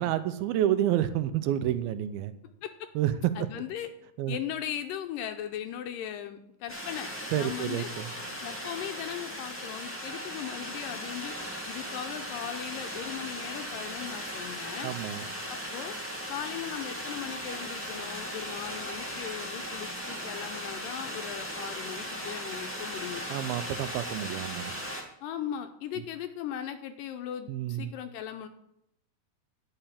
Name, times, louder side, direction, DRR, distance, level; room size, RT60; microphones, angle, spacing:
voice 1, 0.0-2.3 3.0-3.3 4.2-4.4 7.3-8.1 14.8-15.3 23.3-24.7 27.5-27.9, right 12 dB, 90° right, 12 dB, 2.6 m, -29 dB
voice 2, 3.4-3.9 4.3-7.1 7.4-7.9 8.4-11.3 11.7-14.9 15.5-15.9 16.3-23.2 25.2-28.5, left 10 dB, 80° left, 7 dB, 2.2 m, -38 dB
sound 1, 6.7-25.0, equal, 5° left, 1.1 m, -37 dB
10.5 x 5.7 x 8.6 m, 0.80 s
omnidirectional pair, 4.2 m